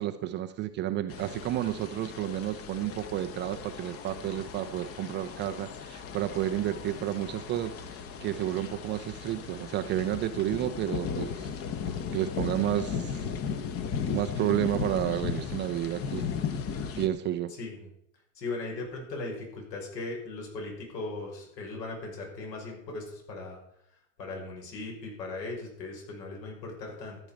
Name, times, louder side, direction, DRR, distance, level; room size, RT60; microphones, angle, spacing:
voice 1, 0.0-7.7 8.2-11.6 12.1-13.3 14.1-16.3 17.0-17.5, right 12 dB, 25° right, 8 dB, 0.5 m, -31 dB
sound 1, 1.1-17.1, left 6 dB, 30° left, 1.0 m, -36 dB
voice 2, 17.5-17.9 18.3-23.6 24.2-27.2, left 3 dB, 75° left, 0 dB, 6.3 m, -38 dB
14.0 x 9.2 x 5.2 m, 0.75 s
hypercardioid pair, 120°, 50 cm